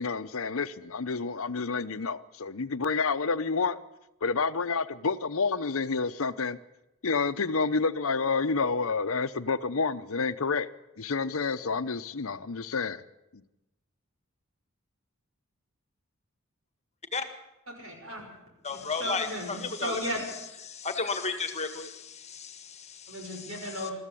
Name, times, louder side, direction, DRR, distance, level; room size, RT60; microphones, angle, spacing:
voice 1, 0.0-3.8 4.2-6.6 7.0-10.7 11.0-13.0 13.3-13.4, left 4 dB, 70° left, 0.8 m, -29 dB
voice 2, 17.7-18.3 18.7-20.2 23.1-23.9, equal, 65° right, 6.5 m, -35 dB
voice 3, 18.6-20.0 20.7-23.7, left 4 dB, 30° left, 1.8 m, -34 dB
22.0 x 14.0 x 8.5 m
head